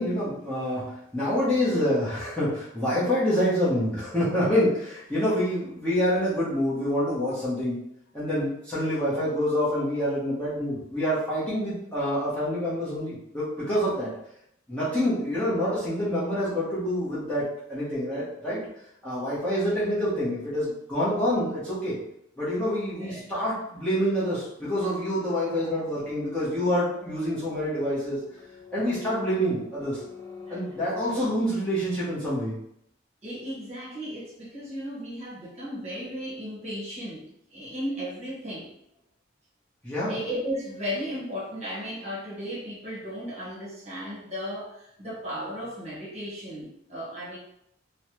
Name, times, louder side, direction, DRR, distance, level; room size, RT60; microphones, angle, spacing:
voice 1, 0.0-7.8 8.1-14.1 14.7-18.6 19.0-22.0 22.4-28.2 28.7-30.0 30.5-32.6 39.8-40.2, equal, 5° left, -11 dB, 0.9 m, -27 dB
sound 1, 24.6-31.5, left 3 dB, 65° left, 0.7 m, -46 dB
voice 2, 33.2-37.3 37.5-38.7 40.1-47.4, equal, 35° right, -8 dB, 1.2 m, -35 dB
3.2 x 2.1 x 2.9 m, 0.76 s
head